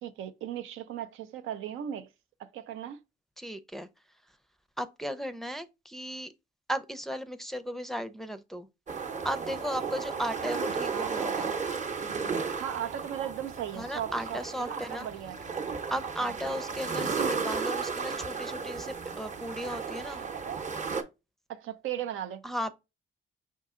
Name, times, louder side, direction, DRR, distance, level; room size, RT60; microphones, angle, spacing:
voice 1, 0.0-2.1 2.4-3.0 10.9-11.1 12.6-15.4 16.2-16.3 21.5-22.4, right 10 dB, 85° right, 0.6 m, -37 dB
voice 2, 3.4-3.9 4.8-6.3 6.7-8.7 9.2-11.5 13.7-15.1 15.9-20.2 22.4-22.7, equal, ahead, 0.5 m, -35 dB
sound 1, 8.9-21.0, right 5 dB, 40° right, 0.8 m, -34 dB
5.3 x 2.7 x 3.6 m
cardioid pair, 90°, 20 cm